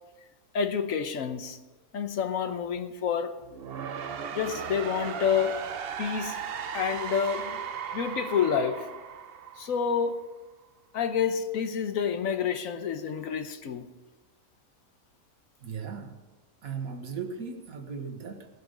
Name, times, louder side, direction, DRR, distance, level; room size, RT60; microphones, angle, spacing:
voice 1, 0.5-1.6 1.9-3.3 4.3-5.6 6.0-6.4 6.7-7.6 7.9-8.9 9.6-10.2 10.9-13.9, left 7 dB, 70° left, 1.2 m, -28 dB
sound 1, 3.4-10.3, right 7 dB, 55° right, 0.7 m, -37 dB
voice 2, 15.6-16.1 16.6-18.5, right 6 dB, 75° right, 1.7 m, -37 dB
18.0 x 8.0 x 5.1 m
omnidirectional pair, 1.5 m